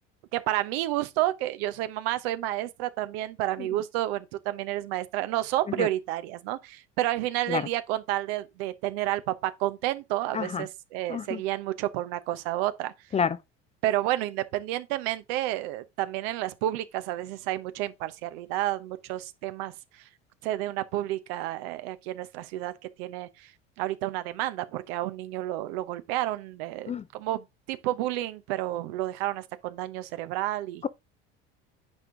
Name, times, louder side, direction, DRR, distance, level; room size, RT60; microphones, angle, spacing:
voice 1, 0.3-12.9 13.8-19.7 20.4-22.7 23.0-23.5 23.8-30.8, right 15 dB, 75° right, 1.0 m, -30 dB
voice 2, 10.3-10.6 11.1-11.4 13.1-13.4 26.9-27.0, left 6 dB, 20° left, 0.5 m, -28 dB
8.9 x 4.7 x 3.7 m
supercardioid pair, 100°, 30 cm